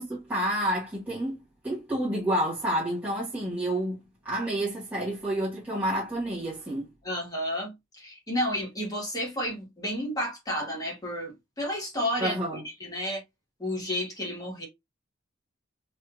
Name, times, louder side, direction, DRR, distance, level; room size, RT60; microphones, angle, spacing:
voice 1, 0.0-6.9 12.2-12.6, right 1 dB, 10° right, 1.2 m, -29 dB
voice 2, 7.0-12.4 12.8-13.2 13.6-14.7, equal, 20° left, 1.3 m, -31 dB
3.3 x 3.1 x 2.4 m
head